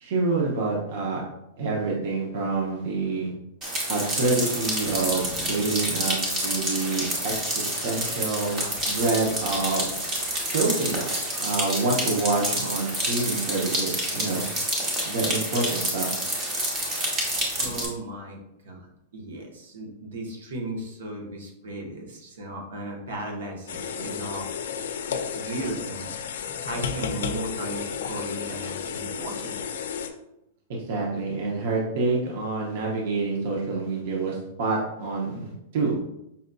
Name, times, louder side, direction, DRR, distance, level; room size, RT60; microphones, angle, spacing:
voice 1, 0.0-1.2 1.6-3.3 3.9-9.9 10.5-11.0 11.4-14.5 15.0-16.1 30.7-35.9, right 3 dB, 50° right, -2 dB, 0.7 m, -27 dB
sound 1, 3.6-17.9, right 1 dB, 20° right, 0.8 m, -28 dB
voice 2, 17.6-18.9 19.1-24.5 25.3-26.1 26.6-29.6, right 1 dB, 80° right, 1 dB, 1.0 m, -35 dB
sound 2, 23.7-30.1, left 7 dB, 80° left, 0.4 m, -32 dB
5.4 x 2.6 x 2.3 m, 0.84 s
supercardioid pair, 175°, 0 cm